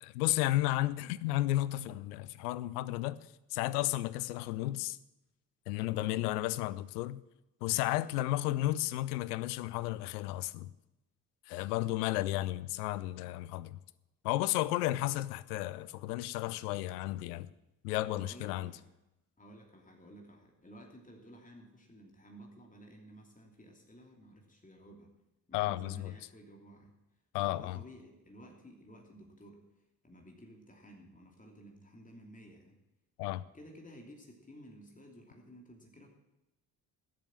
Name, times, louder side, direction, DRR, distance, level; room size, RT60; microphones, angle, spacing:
voice 1, 0.0-5.0 5.7-7.2 7.6-10.7 11.5-13.8 14.2-17.5 17.8-18.7 25.5-26.1 27.3-27.8 33.2-33.4, left 16 dB, 70° left, 0.7 m, -33 dB
voice 2, 5.9-6.3 18.1-18.9 19.4-25.1 25.5-26.9 27.4-29.6 30.0-32.8 33.5-36.1, equal, 15° left, 3.0 m, -54 dB
16.0 x 7.7 x 7.7 m
figure-of-eight pair, 45°, 48 cm